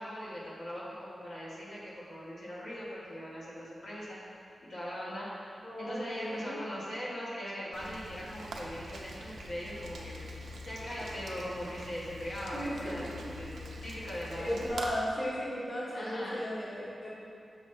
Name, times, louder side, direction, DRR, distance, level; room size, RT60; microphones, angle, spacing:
voice 1, 0.0-4.2 4.6-5.5 5.8-14.6 15.9-16.4, equal, 65° left, -7 dB, 1.3 m, -40 dB
voice 2, 5.6-6.6 12.5-13.1 14.3-17.1, equal, 30° left, -7 dB, 1.1 m, -35 dB
Rain, 7.7-14.9, equal, 75° right, 0.6 m, -44 dB
6.2 x 3.2 x 5.5 m, 2.5 s
wide cardioid pair, 160°, 0 cm